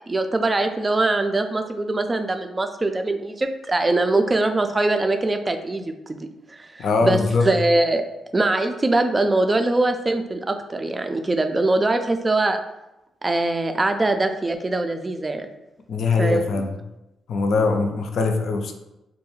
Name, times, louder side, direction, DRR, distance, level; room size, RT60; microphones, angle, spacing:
voice 1, 0.1-6.2 6.5-7.2 7.4-8.0 8.3-12.6 13.2-15.5 16.2-16.5, right 2 dB, 30° right, 7 dB, 0.3 m, -22 dB
voice 2, 6.8-7.6 15.9-16.8 17.3-18.7, left 4 dB, 70° left, 4 dB, 0.3 m, -22 dB
2.3 x 2.2 x 3.0 m, 0.93 s
supercardioid pair, 50°, 0 cm